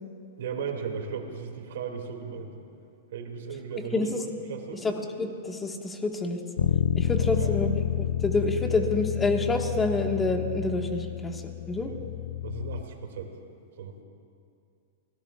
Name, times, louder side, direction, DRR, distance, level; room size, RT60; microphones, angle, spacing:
voice 1, 0.4-2.5 3.1-4.0 4.5-4.9 7.2-7.5 11.9-12.0 12.4-13.3 13.8-13.9, right 6 dB, 75° right, 3 dB, 2.5 m, -36 dB
voice 2, 4.8-6.4 6.9-11.9, left 2 dB, 15° left, 2 dB, 1.6 m, -28 dB
Bass guitar, 6.6-12.8, left 10 dB, 75° left, 0.4 m, -29 dB
27.5 x 18.0 x 2.5 m, 2.4 s
hypercardioid pair, 130°, 0 cm